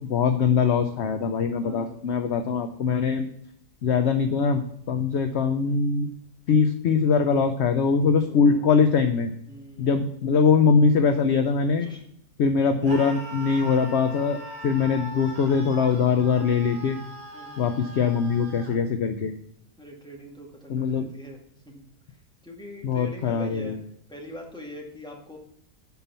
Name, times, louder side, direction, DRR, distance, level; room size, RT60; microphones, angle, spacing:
voice 1, 0.1-3.3 3.8-6.1 6.5-9.3 9.8-11.9 12.4-17.0 17.6-19.3 20.7-21.1 22.8-23.8, left 5 dB, 60° left, 7 dB, 0.7 m, -22 dB
voice 2, 1.6-2.0 8.3-8.6 9.5-10.2 11.8-12.1 17.3-17.7 19.8-22.2 22.4-23.8 24.1-25.4, left 1 dB, 5° left, -1 dB, 1.7 m, -43 dB
Screaming, 12.8-18.8, right 1 dB, 25° right, 1.7 m, -40 dB
8.2 x 5.7 x 5.5 m, 0.74 s
omnidirectional pair, 1.7 m